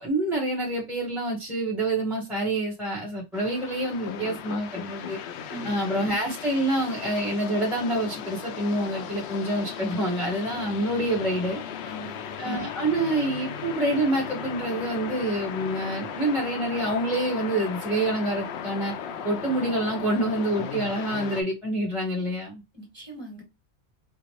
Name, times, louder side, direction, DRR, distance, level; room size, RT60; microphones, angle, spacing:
voice 1, 0.0-5.2 5.6-11.6 12.4-18.9 19.2-22.6, right 1 dB, ahead, 1.0 m, -27 dB
sound 1, 3.3-21.4, left 8 dB, 75° left, 0.8 m, -36 dB
voice 2, 11.8-12.4 22.7-23.4, right 1 dB, 25° right, 1.7 m, -41 dB
4.7 x 2.0 x 2.9 m
omnidirectional pair, 1.1 m